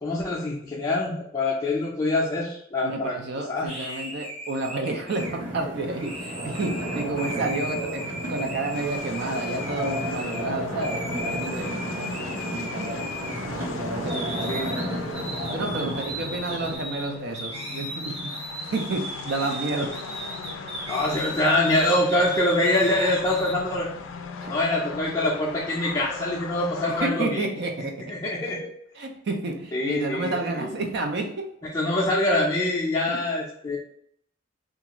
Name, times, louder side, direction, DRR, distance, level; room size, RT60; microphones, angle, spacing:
voice 1, 0.0-3.2 3.5-3.7 14.5-14.8 20.9-23.9 24.5-27.5 28.1-28.7 29.7-30.4 30.6-30.7 31.7-33.8, left 1 dB, 20° left, -7 dB, 0.4 m, -24 dB
voice 2, 2.8-13.0 13.8-15.0 15.5-18.3 18.6-20.0 24.4-24.6 26.9-27.9 28.9-31.5 33.1-33.2, right 2 dB, 60° right, 3 dB, 0.4 m, -30 dB
sound 1, 3.7-10.4 10.8-13.7 14.1-23.5, equal, 35° right, 1.0 m, -37 dB
sound 2, 5.1-16.8, equal, 75° right, 0.9 m, -33 dB
sound 3, 8.7-27.1, left 5 dB, 85° left, 0.3 m, -39 dB
2.4 x 2.4 x 2.9 m, 0.69 s
head